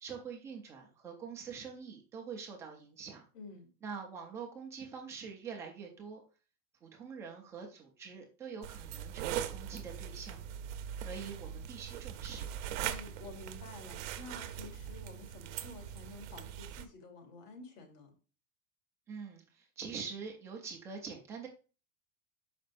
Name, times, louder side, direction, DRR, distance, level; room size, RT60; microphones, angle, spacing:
voice 1, 0.0-3.2 3.8-6.2 6.8-10.4 11.0-12.5 19.1-21.5, right 6 dB, 5° right, 0 dB, 0.4 m, -45 dB
voice 2, 3.3-3.7 12.8-18.1, left 3 dB, 80° left, 3 dB, 3.2 m, -50 dB
sound 1, 8.6-16.8, right 10 dB, 50° right, 0.8 m, -41 dB
13.0 x 5.2 x 2.5 m, 0.34 s
supercardioid pair, 175°, 47 cm